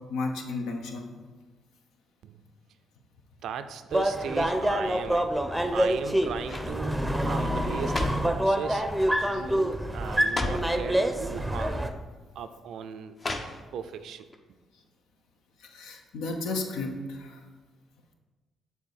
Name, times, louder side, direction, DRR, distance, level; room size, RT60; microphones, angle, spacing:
voice 1, 0.1-1.1 9.3-9.4 15.6-17.4, left 3 dB, 80° left, 3 dB, 0.7 m, -33 dB
voice 2, 3.4-5.3 5.7-8.9 9.2-11.9 12.3-13.1 13.7-14.3, right 7 dB, 70° right, 10 dB, 0.4 m, -37 dB
sound 1, 3.9-11.9, right 1 dB, 5° right, 0.6 m, -26 dB
sound 2, 5.7-6.0 6.4-6.8 7.6-8.4 9.2-9.4 9.7-9.8 10.2-10.8 11.7-11.8 13.2-13.9 14.3-14.4, left 2 dB, 40° left, 0.7 m, -34 dB
6.7 x 3.4 x 4.7 m, 1.3 s
hypercardioid pair, 50°, 0 cm